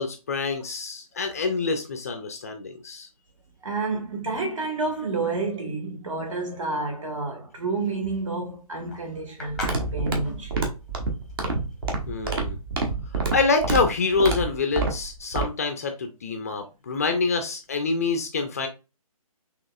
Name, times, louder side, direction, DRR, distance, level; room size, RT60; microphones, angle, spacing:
voice 1, 0.0-3.1 12.1-12.6 13.3-18.7, left 4 dB, 25° left, 0.4 m, -26 dB
voice 2, 3.6-10.7, right 3 dB, 60° right, 1.9 m, -29 dB
sound 1, 7.8-12.8, left 3 dB, ahead, 0.8 m, -40 dB
sound 2, 9.5-15.4, right 3 dB, 40° right, 1.0 m, -28 dB
6.0 x 2.9 x 2.3 m
figure-of-eight pair, 145°, 19 cm